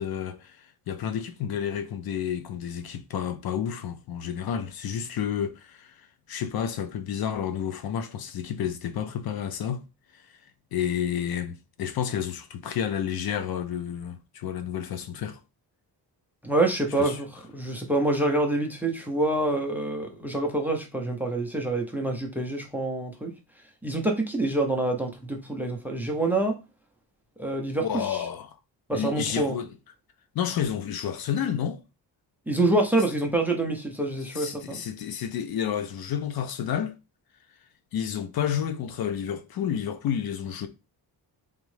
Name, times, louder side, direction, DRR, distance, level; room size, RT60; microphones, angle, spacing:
voice 1, 0.0-9.8 10.1-10.4 10.7-15.4 17.0-17.2 27.8-28.6 28.9-29.7 30.3-31.8 34.3-37.0 37.9-40.7, left 9 dB, 60° left, 0.5 m, -30 dB
voice 2, 16.4-17.3 17.5-23.3 23.8-26.6 27.4-28.2 28.9-29.6 32.5-34.8, right 2 dB, 5° right, 0.5 m, -26 dB
3.6 x 3.1 x 3.2 m
wide cardioid pair, 180°, 42 cm